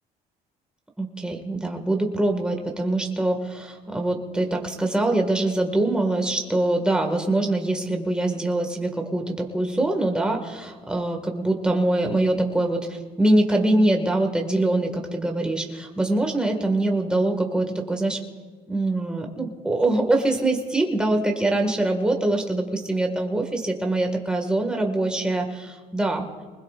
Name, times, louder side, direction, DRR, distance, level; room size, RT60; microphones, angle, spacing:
voice 1, 1.0-18.2 18.7-25.5 25.9-26.2, right 2 dB, 5° right, 2 dB, 1.8 m, -23 dB
24.0 x 20.5 x 2.5 m, 1.5 s
cardioid pair, 110°, 17 cm